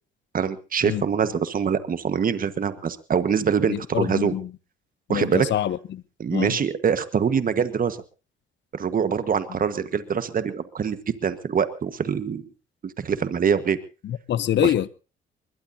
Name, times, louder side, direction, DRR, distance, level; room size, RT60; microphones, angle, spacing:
voice 1, 0.3-4.3 5.1-5.5 6.2-8.0 8.7-12.4 12.8-13.8 14.6-14.7, right 7 dB, 45° right, 1.5 m, -24 dB
voice 2, 3.7-4.5 5.1-6.0 6.3-6.6 14.0-14.9, left 11 dB, 65° left, 0.8 m, -25 dB
22.0 x 21.0 x 2.8 m
cardioid pair, 90°, 20 cm